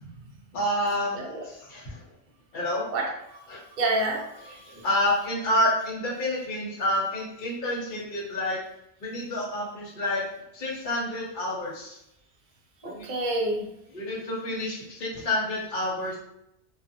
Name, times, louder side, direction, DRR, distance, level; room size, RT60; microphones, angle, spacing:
voice 1, 0.5-2.0 2.5-2.9 3.5-3.6 4.5-8.6 9.0-10.2 10.5-12.0 12.8-13.1 13.9-16.2, left 1 dB, 50° left, -4 dB, 0.9 m, -29 dB
voice 2, 2.9-3.4 3.8-4.6 12.8-13.7, right 2 dB, 55° right, -1 dB, 0.7 m, -28 dB
2.5 x 2.4 x 2.6 m, 0.80 s
omnidirectional pair, 1.1 m